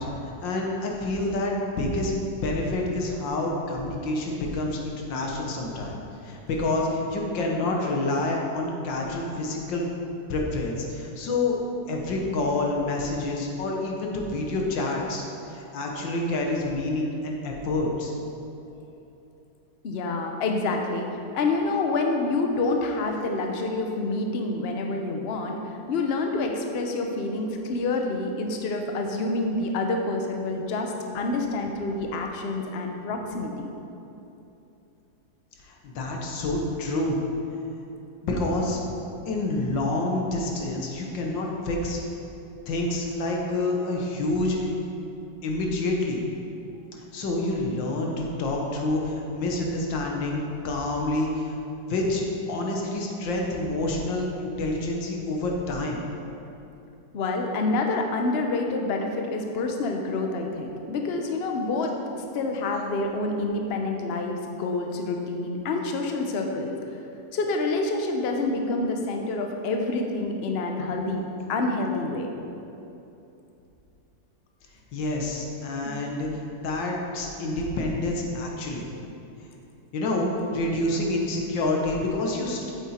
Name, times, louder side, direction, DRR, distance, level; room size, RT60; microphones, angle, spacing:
voice 1, 0.0-6.0 6.2-9.8 10.3-11.6 11.9-15.2 15.5-18.1 35.6-37.2 38.2-38.8 39.3-42.0 42.7-44.7 45.4-46.2 46.9-51.6 51.9-56.0 74.9-78.9 79.9-82.7, left 2 dB, 85° left, 0 dB, 1.8 m, -28 dB
voice 2, 19.8-21.1 21.3-25.6 25.9-33.7 57.1-66.7 67.3-71.2 71.5-72.3 75.8-75.9, left 3 dB, 50° left, 3 dB, 0.8 m, -27 dB
8.6 x 7.2 x 4.3 m, 2.8 s
omnidirectional pair, 2.0 m